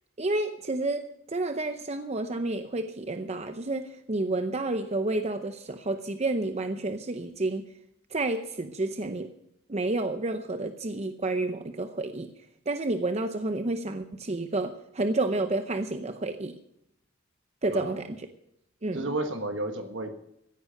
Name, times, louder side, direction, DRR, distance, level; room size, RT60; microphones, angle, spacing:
voice 1, 0.2-7.7 8.1-9.3 9.7-12.3 12.7-16.6 17.6-18.3 18.8-19.2, right 2 dB, 35° right, 8 dB, 0.7 m, -30 dB
voice 2, 17.7-18.0 18.9-20.1, right 2 dB, 75° right, 6 dB, 1.4 m, -32 dB
16.0 x 10.0 x 6.4 m, 0.78 s
head